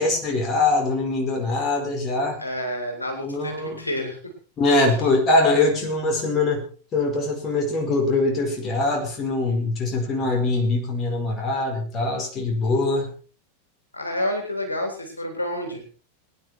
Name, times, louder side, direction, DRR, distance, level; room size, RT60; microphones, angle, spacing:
voice 1, 0.0-2.4 3.2-3.8 4.6-6.6 6.9-13.1, left 2 dB, 30° left, 3 dB, 5.0 m, -22 dB
voice 2, 2.4-4.3 13.9-15.8, left 1 dB, 80° left, 3 dB, 3.9 m, -29 dB
22.5 x 10.5 x 4.5 m, 0.38 s
figure-of-eight pair, 90°, 0 cm